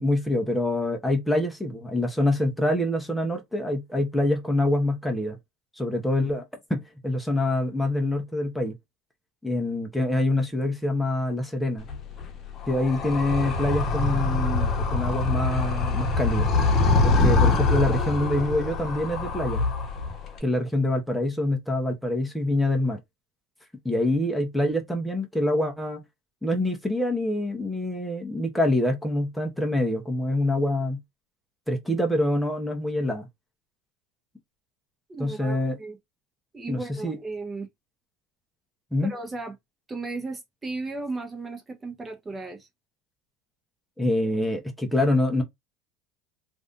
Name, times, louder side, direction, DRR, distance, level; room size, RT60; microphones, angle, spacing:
voice 1, 0.0-5.4 5.8-6.4 6.7-8.8 9.4-11.9 12.7-16.5 17.0-19.6 20.4-23.0 23.8-26.0 26.4-31.0 31.7-33.3 35.2-35.8 36.7-37.2 38.9-39.1 44.0-45.4, left 1 dB, 5° left, 0.9 m, -25 dB
Animal, 11.8-20.4, left 3 dB, 35° left, 1.0 m, -24 dB
voice 2, 35.1-36.0 36.5-37.7 39.0-39.5 39.9-42.7, right 3 dB, 20° right, 1.1 m, -35 dB
3.2 x 2.6 x 2.5 m
supercardioid pair, 115°, 0 cm